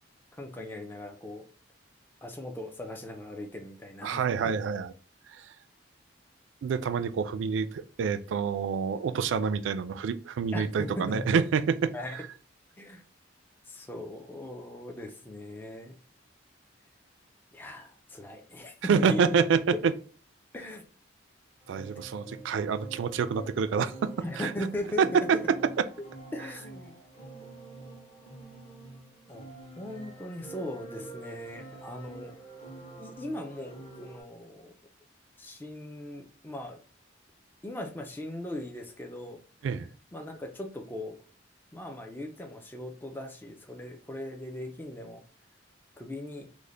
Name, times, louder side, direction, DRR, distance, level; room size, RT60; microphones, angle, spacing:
voice 1, 0.4-1.4 2.2-4.5 10.5-11.4 11.9-12.2 12.8-13.0 13.7-16.0 17.5-19.4 20.5-20.8 24.2-25.3 26.3-26.9 27.8-28.0 29.3-29.5 29.8-32.4 33.0-34.7 35.4-36.8 37.6-39.4 40.1-41.2 41.7-45.2 46.0-46.5, left 1 dB, 10° left, 0.3 m, -39 dB
voice 2, 4.0-4.9 5.3-5.4 6.6-12.2 18.8-19.9 21.7-24.5 25.0-25.2 39.6-39.9, right 6 dB, 75° right, 0.3 m, -27 dB
sound 1, 21.6-34.2, right 3 dB, 30° left, 0.7 m, -47 dB
3.2 x 2.1 x 3.8 m
head